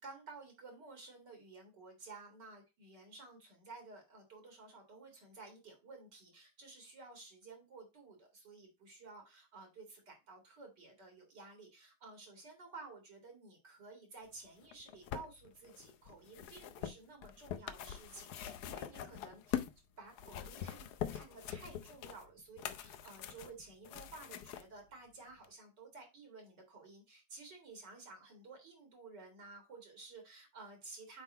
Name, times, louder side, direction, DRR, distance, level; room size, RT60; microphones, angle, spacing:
voice 1, 0.0-19.6 20.0-31.2, right 3 dB, 60° right, 2 dB, 3.0 m, -54 dB
sound 1, 14.6-19.8 20.1-24.6 25.4-25.5, left 10 dB, 70° left, 1.1 m, -43 dB
8.1 x 3.8 x 4.2 m, 0.25 s
omnidirectional pair, 2.1 m